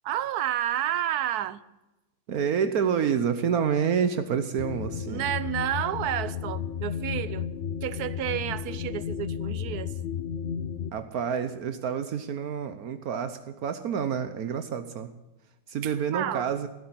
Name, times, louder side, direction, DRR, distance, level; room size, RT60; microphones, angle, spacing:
voice 1, 0.0-1.6 5.0-7.5 7.8-9.9 16.1-16.5, right 11 dB, 90° right, 1.2 m, -30 dB
voice 2, 2.3-5.3 10.9-15.1 15.7-16.7, right 7 dB, 75° right, 1.4 m, -28 dB
sound 1, 4.6-10.9, left 8 dB, 60° left, 0.7 m, -33 dB
16.0 x 10.0 x 8.0 m
omnidirectional pair, 1.6 m